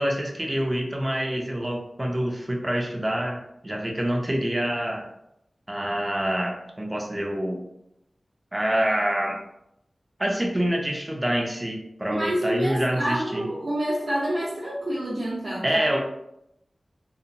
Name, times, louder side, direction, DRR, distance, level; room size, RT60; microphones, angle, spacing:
voice 1, 0.0-5.1 5.7-7.6 8.5-9.4 10.2-13.5 15.6-16.0, right 1 dB, 20° right, 1 dB, 0.5 m, -26 dB
voice 2, 12.1-15.8, right 1 dB, 55° right, -9 dB, 0.7 m, -28 dB
2.8 x 2.1 x 2.5 m, 0.80 s
wide cardioid pair, 70°, 0 cm